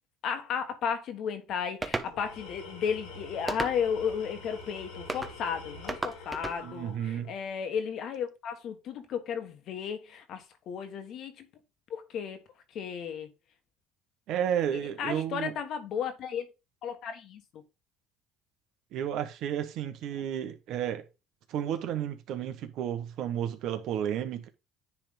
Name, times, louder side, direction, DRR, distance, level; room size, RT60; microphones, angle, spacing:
voice 1, 0.2-11.5 11.9-12.4 12.7-13.3 14.7-16.4 16.8-17.6, left 7 dB, 60° left, 1.4 m, -34 dB
sound 1, 1.8-2.1 3.5-4.0 5.1-5.3 5.9-6.6, right 2 dB, 15° right, 0.8 m, -34 dB
Tools, 2.0-7.4, left 4 dB, 90° left, 2.4 m, -46 dB
voice 2, 6.6-7.3 14.3-15.5 18.9-21.0 21.5-24.5, right 9 dB, 70° right, 1.1 m, -32 dB
9.9 x 3.5 x 3.7 m
supercardioid pair, 100°, 0 cm